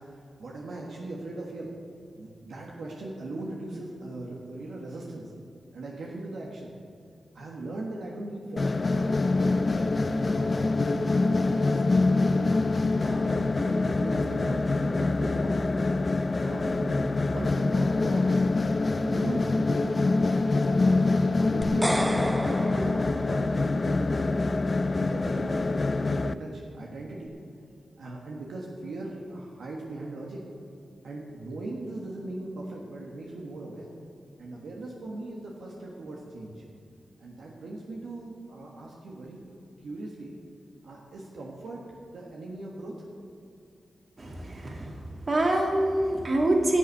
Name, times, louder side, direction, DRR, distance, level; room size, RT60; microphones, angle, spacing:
voice 1, 0.4-1.7 2.1-5.3 5.7-6.7 7.3-12.6 13.0-15.6 16.4-18.5 18.9-20.1 20.6-24.4 25.0-27.3 28.0-30.4 31.0-33.9 34.4-36.6 37.2-39.4 39.8-40.4 40.8-41.8 42.1-42.9, right 2 dB, 85° right, -2 dB, 1.5 m, -39 dB
sound 1, 8.6-26.3, left 3 dB, 45° left, 0.4 m, -25 dB
sound 2, 21.6-23.9, right 1 dB, 15° right, 0.9 m, -31 dB
voice 2, 44.2-46.8, right 1 dB, 50° right, 0 dB, 2.4 m, -26 dB
10.0 x 7.3 x 8.2 m, 2.5 s
cardioid pair, 50°, 0 cm